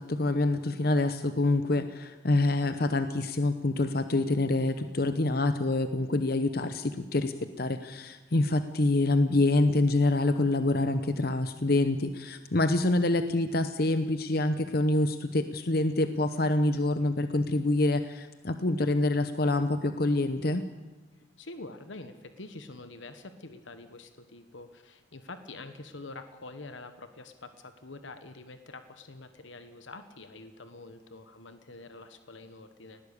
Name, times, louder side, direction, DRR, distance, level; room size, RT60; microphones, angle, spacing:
voice 1, 0.0-20.6, left 2 dB, 50° left, 10 dB, 0.9 m, -26 dB
voice 2, 21.4-33.0, left 2 dB, 75° left, 9 dB, 1.3 m, -46 dB
19.5 x 17.0 x 8.4 m, 1.2 s
head